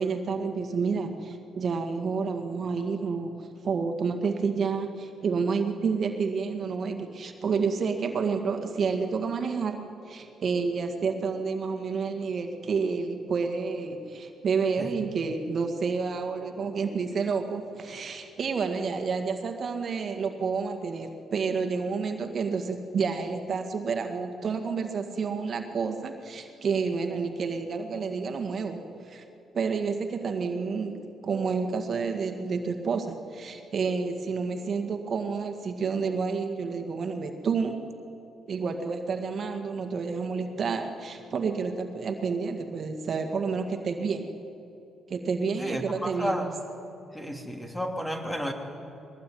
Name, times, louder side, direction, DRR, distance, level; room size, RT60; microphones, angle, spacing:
voice 1, 0.0-29.2 29.5-37.8 38.5-44.4 45.1-46.5, right 5 dB, 50° right, 5 dB, 1.9 m, -29 dB
voice 2, 14.8-15.2 45.5-46.5 47.1-48.5, equal, 10° left, 3 dB, 3.2 m, -32 dB
21.5 x 19.0 x 9.4 m, 2.8 s
cardioid pair, 90°, 0 cm